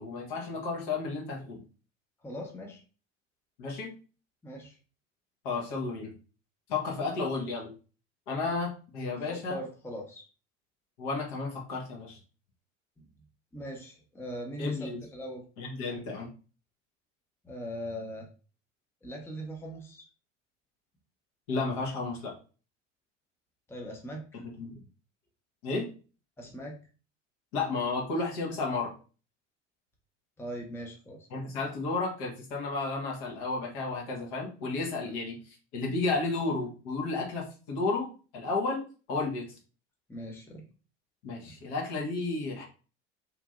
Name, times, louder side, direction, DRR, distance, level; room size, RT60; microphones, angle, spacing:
voice 1, 0.0-1.6 3.6-3.9 5.4-6.1 6.7-7.7 8.3-9.6 11.0-12.2 14.6-15.0 15.6-16.3 21.5-22.3 24.4-24.8 25.6-25.9 27.5-28.9 31.3-35.4 35.7-39.5 41.2-42.6, left 3 dB, 60° left, -1 dB, 1.1 m, -32 dB
voice 2, 2.2-2.8 4.4-4.8 9.1-10.2 13.0-13.1 13.5-15.4 17.4-18.3 19.0-20.1 23.7-24.4 26.4-26.8 30.4-31.3 35.0-35.1 40.1-40.6 41.4-41.5, equal, 5° left, 0 dB, 0.7 m, -40 dB
2.9 x 2.6 x 2.4 m, 0.36 s
figure-of-eight pair, 70°, 36 cm